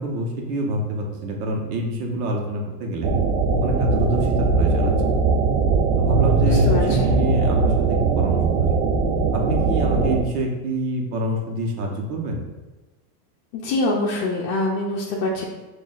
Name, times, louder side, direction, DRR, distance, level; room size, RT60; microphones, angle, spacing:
voice 1, 0.0-3.1 3.6-4.9 6.0-8.4 8.7-8.8 9.3-12.4, right 1 dB, 70° right, 1 dB, 1.0 m, -26 dB
sound 1, 3.0-10.2, right 4 dB, 50° right, 0.5 m, -20 dB
voice 2, 6.5-7.1 13.5-15.4, left 2 dB, 45° left, -4 dB, 0.7 m, -24 dB
6.1 x 2.6 x 2.4 m, 1.1 s
supercardioid pair, 140°, 49 cm